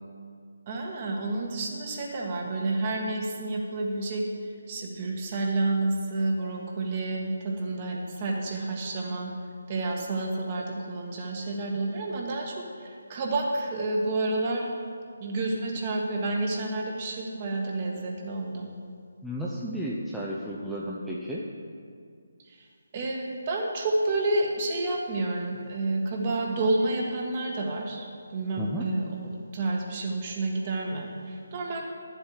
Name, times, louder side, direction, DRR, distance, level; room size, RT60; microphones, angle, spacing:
voice 1, 0.7-9.3 9.7-14.7 15.2-18.7 22.5-22.6 22.9-31.8, right 2 dB, 30° right, 0 dB, 1.4 m, -30 dB
voice 2, 19.2-21.4 28.6-28.8, equal, ahead, -7 dB, 0.6 m, -33 dB
11.0 x 7.3 x 4.8 m, 2.2 s
figure-of-eight pair, 150°, 0 cm